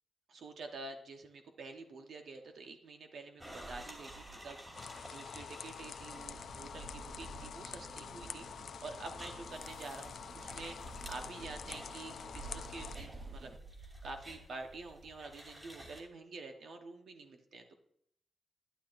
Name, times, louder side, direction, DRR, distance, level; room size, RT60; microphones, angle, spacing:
voice 1, 0.3-13.5 13.8-17.7, right 3 dB, 70° right, 4 dB, 1.1 m, -48 dB
sound 1, 3.4-16.0, right 2 dB, 25° right, 2.4 m, -51 dB
sound 2, 4.7-13.0, left 7 dB, 70° left, 0.4 m, -47 dB
sound 3, 6.0-13.6, right 5 dB, 50° right, 0.8 m, -56 dB
11.5 x 10.5 x 2.6 m, 0.70 s
wide cardioid pair, 115°, 0 cm